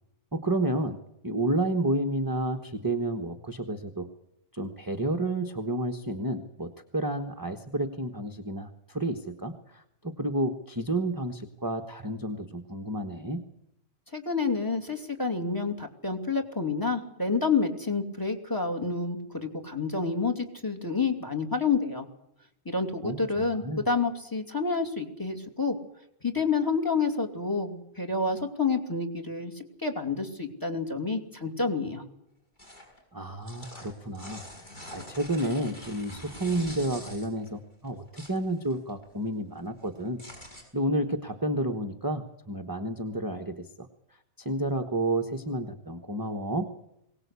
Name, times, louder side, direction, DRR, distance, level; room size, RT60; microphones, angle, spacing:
voice 1, 0.3-1.0 1.2-4.1 4.5-13.4 23.0-23.8 33.1-40.2 40.7-43.9 44.4-46.7, right 1 dB, 15° right, 4 dB, 1.2 m, -31 dB
voice 2, 14.1-22.1 22.7-25.8 26.2-32.0, left 4 dB, 15° left, 6 dB, 2.6 m, -29 dB
sound 1, 32.6-33.0 33.3-37.5 37.8-39.1 39.4-40.6, left 1 dB, 40° left, 6.6 m, -44 dB
22.5 x 18.5 x 8.3 m, 0.78 s
omnidirectional pair, 1.3 m